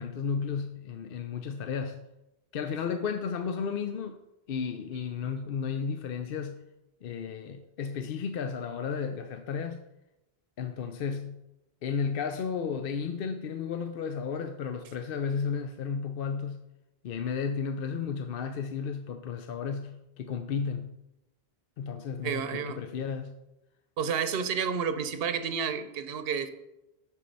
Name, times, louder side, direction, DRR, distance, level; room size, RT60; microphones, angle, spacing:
voice 1, 0.0-2.0 2.5-4.2 4.5-6.6 7.0-9.8 10.6-11.4 11.8-16.6 17.0-21.0 21.8-23.3, left 6 dB, 65° left, 0.7 m, -33 dB
voice 2, 22.2-22.8 24.0-26.5, right 6 dB, 70° right, 0.9 m, -30 dB
7.2 x 6.5 x 5.3 m
omnidirectional pair, 1.0 m